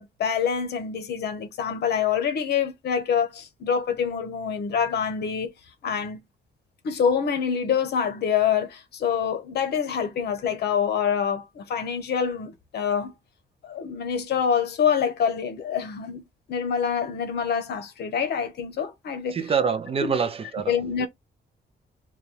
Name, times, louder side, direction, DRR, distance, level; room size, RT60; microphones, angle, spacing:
voice 1, 0.0-5.5 5.8-6.2 6.8-13.1 13.6-16.2 16.5-19.4 20.0-20.2 20.7-21.1, left 7 dB, 65° left, 0.9 m, -26 dB
voice 2, 19.3-21.1, right 6 dB, 30° right, 0.5 m, -26 dB
4.0 x 2.4 x 3.2 m
cardioid pair, 165°, 19 cm